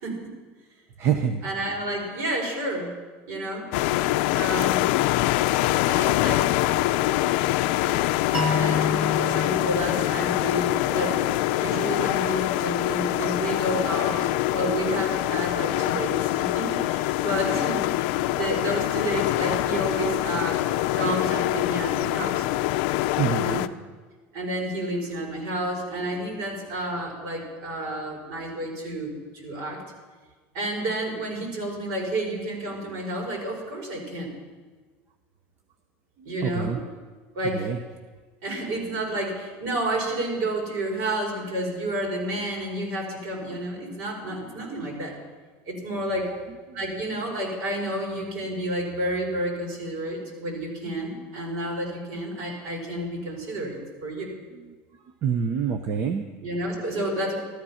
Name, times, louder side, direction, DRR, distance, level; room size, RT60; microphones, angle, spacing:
voice 1, 0.0-0.4 1.4-2.9 3.3-3.7 4.3-4.9 5.8-6.6 7.9-8.0 8.4-18.1 18.4-22.5 23.3-23.7 24.3-29.8 30.5-34.3 36.2-36.8 37.3-37.7 38.4-45.2 45.7-46.4 46.7-54.3 56.4-57.4, right 1 dB, 65° right, -1 dB, 5.4 m, -30 dB
voice 2, 1.0-1.4 23.2-23.6 36.2-36.8 37.5-37.8 46.7-46.8 54.5-54.8 55.2-56.3, right 7 dB, 40° right, 7 dB, 0.7 m, -26 dB
sound 1, 3.7-23.7, left 16 dB, 70° left, 0.4 m, -24 dB
sound 2, 8.3-11.3, left 4 dB, 20° right, 1.5 m, -30 dB
13.5 x 13.5 x 5.7 m, 1.4 s
cardioid pair, 155°, 6 cm